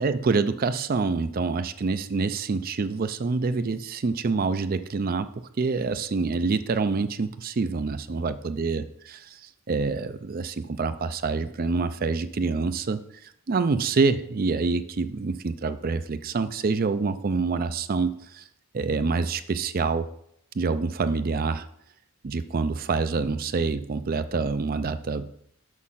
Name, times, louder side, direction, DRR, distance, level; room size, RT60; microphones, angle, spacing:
voice 1, 0.0-5.3 5.6-9.3 9.7-13.0 13.5-18.4 18.7-20.1 20.6-21.7 22.2-25.3, right 4 dB, 40° right, 11 dB, 0.4 m, -26 dB
6.4 x 6.2 x 5.7 m, 0.71 s
head